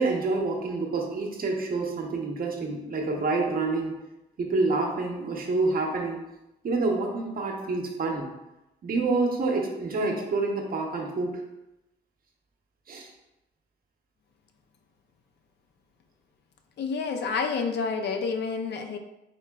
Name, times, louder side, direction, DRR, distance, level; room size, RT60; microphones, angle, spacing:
voice 1, 0.0-3.9 4.4-6.2 6.6-8.3 8.8-11.3 12.9-13.1, right 3 dB, 45° right, 1 dB, 0.9 m, -27 dB
voice 2, 16.8-19.0, left 5 dB, 60° left, 5 dB, 0.5 m, -29 dB
4.4 x 3.6 x 2.3 m, 0.95 s
cardioid pair, 90°, 20 cm